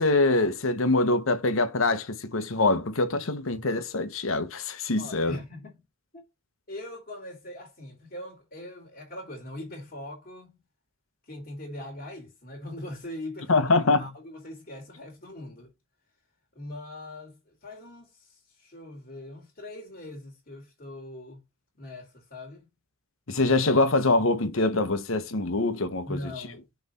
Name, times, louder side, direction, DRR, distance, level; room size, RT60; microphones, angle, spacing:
voice 1, 0.0-5.4 13.5-14.0 23.3-26.3, left 2 dB, 70° left, 1.0 m, -24 dB
voice 2, 5.0-5.8 6.1-6.3 6.7-10.6 11.2-13.7 14.0-15.7 16.5-21.4 21.8-22.7 26.1-26.8, left 1 dB, 45° left, 2.3 m, -41 dB
6.0 x 3.3 x 5.5 m
head